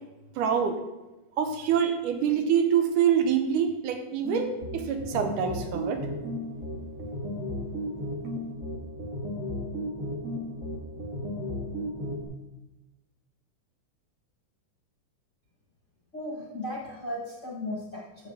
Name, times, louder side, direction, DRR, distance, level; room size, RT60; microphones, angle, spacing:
voice 1, 0.4-0.8 1.4-6.1, right 8 dB, 85° right, 6 dB, 2.4 m, -25 dB
sound 1, 4.2-12.2, left 1 dB, 35° right, 1.3 m, -34 dB
voice 2, 16.1-18.3, left 1 dB, 35° left, -3 dB, 1.2 m, -36 dB
12.5 x 7.3 x 3.5 m, 1.0 s
omnidirectional pair, 3.5 m